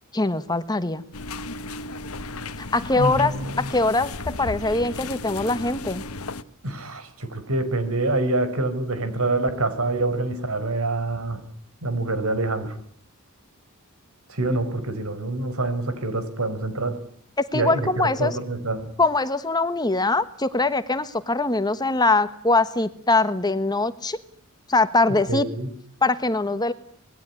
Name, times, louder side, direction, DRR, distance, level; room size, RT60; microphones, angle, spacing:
voice 1, 0.1-1.0 2.6-6.0 17.5-18.4 19.0-24.2 24.7-25.4 26.0-26.7, left 2 dB, 20° left, 12 dB, 1.3 m, -22 dB
sound 1, 1.1-6.4, left 3 dB, 90° left, 1.3 m, -34 dB
voice 2, 2.9-3.6 6.6-11.4 11.8-12.7 14.3-17.0 17.5-17.9 18.2-18.9 25.3-25.7, right 2 dB, 85° right, 11 dB, 4.8 m, -26 dB
26.0 x 20.5 x 9.8 m, 0.64 s
head